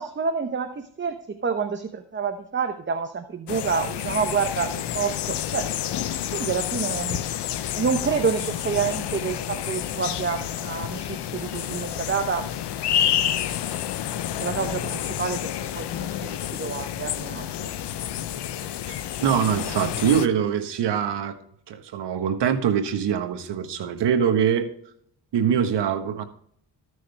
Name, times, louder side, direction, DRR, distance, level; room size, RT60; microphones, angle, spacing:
voice 1, 0.0-5.7 6.3-7.2 7.7-12.5 14.4-17.7, right 6 dB, 25° right, 7 dB, 0.8 m, -28 dB
sound 1, 3.5-20.3, left 10 dB, 70° left, 0.8 m, -29 dB
voice 2, 18.9-21.4 21.7-24.7 25.3-26.2, right 8 dB, 75° right, 7 dB, 1.4 m, -23 dB
14.0 x 6.4 x 3.3 m, 0.66 s
cardioid pair, 80°, 42 cm